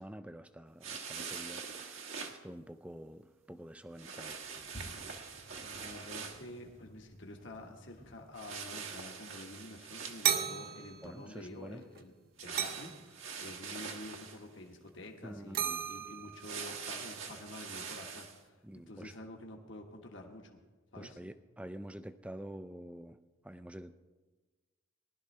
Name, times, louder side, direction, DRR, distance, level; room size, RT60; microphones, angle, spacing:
voice 1, 0.0-4.4 11.0-11.8 15.2-15.8 18.6-19.2 21.0-23.2 23.4-23.9, right 1 dB, 5° right, 11 dB, 0.4 m, -47 dB
sound 1, 0.8-2.4 4.0-6.5 8.3-10.7 12.4-14.4 16.3-18.4, right 6 dB, 70° right, 1.4 m, -44 dB
Sliding door, 4.3-8.7, equal, 40° left, 1.4 m, -55 dB
voice 2, 5.5-12.1 12.4-18.5 18.9-20.5 20.9-21.2, left 1 dB, 60° left, 2 dB, 1.4 m, -49 dB
sound 2, 10.2-11.5 11.7-12.0 12.6-13.0 14.9-15.1 15.5-16.8, right 9 dB, 45° right, 0.6 m, -35 dB
19.5 x 12.0 x 3.3 m, 1.3 s
head